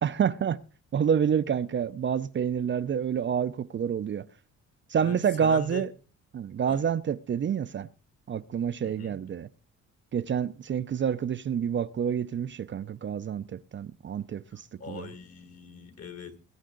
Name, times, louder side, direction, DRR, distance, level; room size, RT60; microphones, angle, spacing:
voice 1, 0.0-0.6 0.9-4.3 4.9-5.9 6.3-7.9 8.3-9.5 10.1-15.1, right 8 dB, 40° right, 0.5 m, -28 dB
voice 2, 5.0-5.9 6.7-6.8 8.8-9.2 14.8-16.4, left 5 dB, 55° left, 2.1 m, -41 dB
20.5 x 8.9 x 3.9 m
cardioid pair, 90°, 30 cm